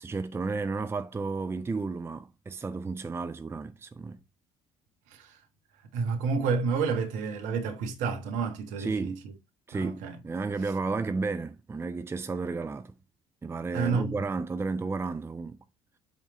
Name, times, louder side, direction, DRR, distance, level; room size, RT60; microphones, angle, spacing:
voice 1, 0.0-4.2 8.8-9.1 9.7-12.9 13.4-15.6, right 4 dB, 15° right, 0.6 m, -32 dB
voice 2, 5.9-9.3 9.7-10.2 13.7-14.2, right 5 dB, 60° right, 1.5 m, -30 dB
8.1 x 3.6 x 4.2 m
figure-of-eight pair, 55°, 14 cm